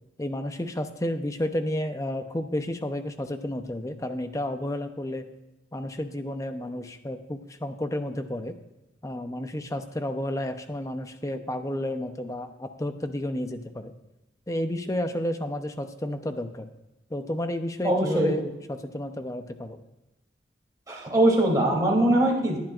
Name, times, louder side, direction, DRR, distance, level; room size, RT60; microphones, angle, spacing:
voice 1, 0.2-5.3 5.7-8.5 9.0-13.9 14.5-16.7 17.1-19.8, left 1 dB, 20° left, 8 dB, 0.7 m, -31 dB
voice 2, 17.8-18.3 20.9-22.6, right 1 dB, 20° right, -2 dB, 3.0 m, -22 dB
18.0 x 10.5 x 2.5 m, 0.95 s
head